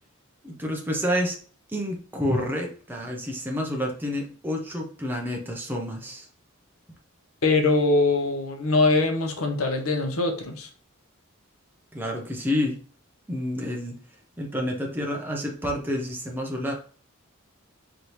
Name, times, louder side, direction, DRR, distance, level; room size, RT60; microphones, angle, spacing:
voice 1, 0.4-1.4 1.7-6.3 11.9-12.8 13.3-14.0 14.4-16.7, equal, 10° right, 0 dB, 0.7 m, -29 dB
voice 2, 7.4-10.7, left 3 dB, 75° left, 5 dB, 0.9 m, -22 dB
4.1 x 3.3 x 3.0 m, 0.42 s
head